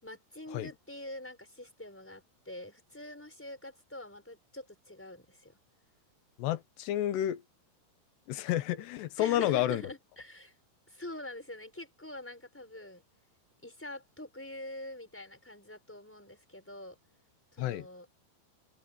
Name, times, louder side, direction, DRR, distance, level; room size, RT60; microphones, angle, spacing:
voice 1, 0.0-5.6 8.8-8.9 9.2-10.6 10.9-13.0 13.6-17.0 17.5-18.1, left 1 dB, 5° left, 5.5 m, -45 dB
voice 2, 6.4-7.4 8.3-9.8 17.6-17.9, left 13 dB, 90° left, 3.4 m, -30 dB
omnidirectional pair, 4.7 m